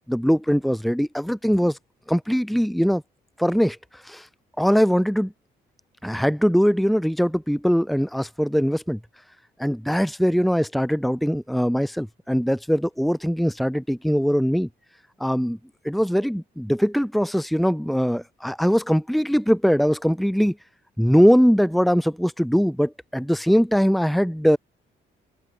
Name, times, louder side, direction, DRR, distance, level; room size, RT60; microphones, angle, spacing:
voice 1, 0.1-1.8 2.1-3.0 3.4-4.3 4.6-5.3 6.0-9.0 9.6-14.7 15.2-15.6 15.8-20.6 21.0-24.6, equal, ahead, 1.8 m, -21 dB
open air
cardioid pair, 90°, 20 cm